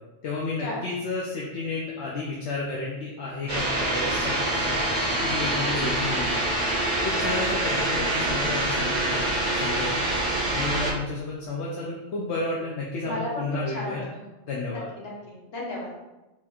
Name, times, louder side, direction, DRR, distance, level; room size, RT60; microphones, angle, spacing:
voice 1, 0.2-4.8 5.2-6.6 7.0-9.2 9.6-10.0 10.5-14.1 14.5-14.9, left 3 dB, 75° left, -4 dB, 1.0 m, -31 dB
sound 1, 3.5-10.9, right 1 dB, 40° right, 1.4 m, -25 dB
voice 2, 13.0-14.2 15.0-15.9, left 1 dB, 60° left, -4 dB, 1.3 m, -34 dB
4.4 x 4.3 x 2.4 m, 1.0 s
omnidirectional pair, 1.2 m